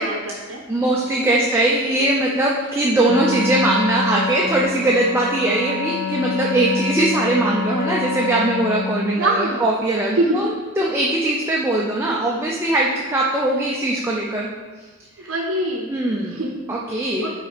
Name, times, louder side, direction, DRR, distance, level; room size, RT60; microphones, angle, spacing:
voice 1, 0.0-0.6 1.3-1.4 9.1-9.7 10.2-10.4 15.2-15.9 16.3-16.6 17.2-17.4, right 1 dB, 70° right, -1 dB, 0.7 m, -23 dB
voice 2, 0.7-14.5 15.2-15.3 15.9-16.4 16.7-17.3, right 1 dB, 10° right, -3 dB, 0.5 m, -21 dB
Wind instrument woodwind instrument, 3.1-9.2, left 3 dB, 60° left, 0.6 m, -26 dB
5.5 x 4.1 x 4.9 m, 1.4 s
head